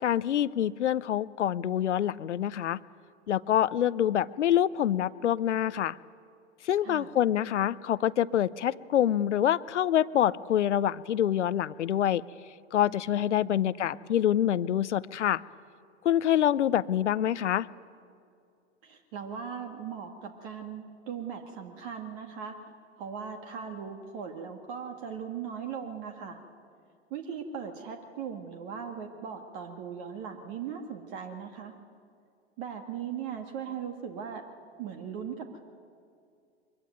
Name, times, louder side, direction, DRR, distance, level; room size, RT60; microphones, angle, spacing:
voice 1, 0.0-2.8 3.3-6.0 6.6-12.2 12.7-15.4 16.0-17.7, left 11 dB, 75° left, 18 dB, 0.7 m, -26 dB
voice 2, 13.4-14.1 18.8-22.6 23.0-26.4 27.1-31.8 32.6-34.4 34.8-35.6, right 7 dB, 50° right, 5 dB, 2.0 m, -39 dB
23.5 x 22.0 x 9.3 m, 2.4 s
figure-of-eight pair, 95°, 36 cm